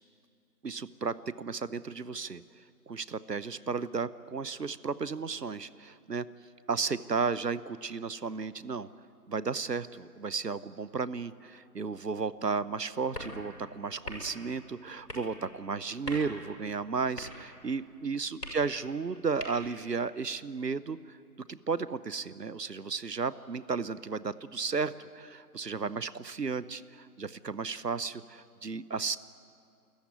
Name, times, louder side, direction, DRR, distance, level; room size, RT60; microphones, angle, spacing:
voice 1, 0.6-2.4 2.9-6.2 6.7-8.9 9.3-21.2 21.5-29.2, right 5 dB, 70° right, 17 dB, 0.9 m, -34 dB
sound 1, 11.8-19.9, equal, 70° left, 7.2 m, -46 dB
30.0 x 14.0 x 9.6 m, 2.3 s
figure-of-eight pair, 175°, 50 cm